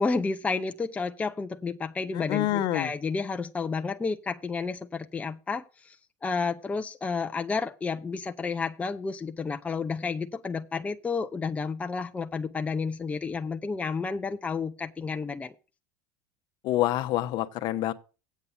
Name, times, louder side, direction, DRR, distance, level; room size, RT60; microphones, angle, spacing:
voice 1, 0.0-6.0 6.2-15.5, left 4 dB, 15° left, 0.6 m, -31 dB
voice 2, 2.1-2.9 16.6-17.9, left 14 dB, 55° left, 0.9 m, -27 dB
8.4 x 6.8 x 6.8 m
supercardioid pair, 105°, 9 cm